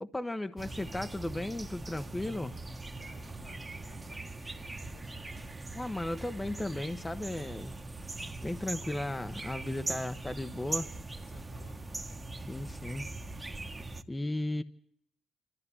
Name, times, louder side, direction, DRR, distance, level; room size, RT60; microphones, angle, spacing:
voice 1, 0.0-2.6 5.7-7.7 8.4-10.9 12.5-13.1 14.1-14.6, left 1 dB, 15° left, 10 dB, 1.0 m, -35 dB
sound 1, 0.6-14.0, right 2 dB, 20° right, 1.4 m, -41 dB
voice 2, 2.9-5.6 11.2-11.8, left 4 dB, 85° left, 9 dB, 6.2 m, -59 dB
26.0 x 13.5 x 10.0 m, 0.70 s
cardioid pair, 90°, 0 cm